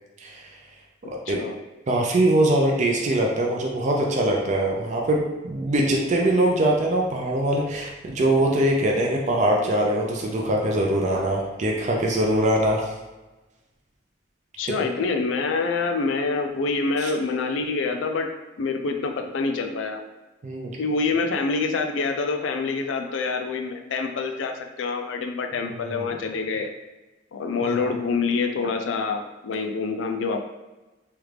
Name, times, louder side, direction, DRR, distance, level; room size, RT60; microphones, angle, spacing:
voice 1, 0.2-0.5 1.1-1.4 1.9-12.9 17.0-17.1 20.4-20.7 25.8-26.1 27.6-27.7, right 1 dB, 40° right, -1 dB, 0.4 m, -22 dB
voice 2, 1.3-1.6 14.6-18.3 18.6-20.0 20.8-26.7 27.3-30.4, left 4 dB, 75° left, 5 dB, 0.4 m, -26 dB
3.2 x 2.4 x 3.2 m, 1.1 s
head